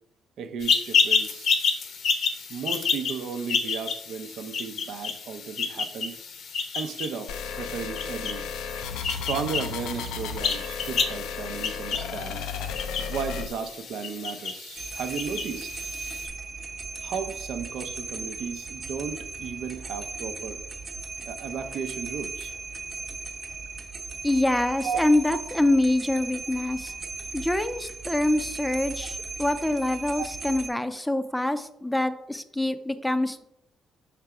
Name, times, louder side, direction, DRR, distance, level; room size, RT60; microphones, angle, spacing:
voice 1, 0.4-1.6 2.5-6.2 6.7-8.5 9.1-12.4 13.0-15.7 17.0-20.6 21.3-22.5 24.8-25.0 30.2-30.3, right 6 dB, 75° right, 8 dB, 0.6 m, -34 dB
sound 1, 0.6-16.3, left 5 dB, 70° left, 0.9 m, -30 dB
sound 2, 7.3-13.5, left 6 dB, 90° left, 0.5 m, -34 dB
sound 3, 14.8-30.7, right 4 dB, 40° right, 1.0 m, -37 dB
voice 2, 24.2-26.9 27.3-33.4, left 1 dB, 5° left, 10 dB, 0.5 m, -25 dB
5.7 x 3.4 x 4.8 m, 0.79 s
cardioid pair, 90°, 0 cm